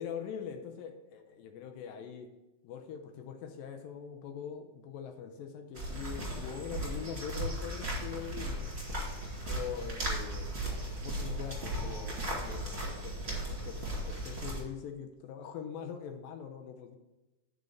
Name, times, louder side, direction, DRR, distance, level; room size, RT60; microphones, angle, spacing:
voice 1, 0.0-2.3 2.6-8.6 9.5-17.0, left 8 dB, 85° left, 5 dB, 2.4 m, -43 dB
sound 1, 5.7-14.6, right 1 dB, 20° right, 2.0 m, -36 dB
7.8 x 5.0 x 7.0 m, 1.0 s
omnidirectional pair, 4.1 m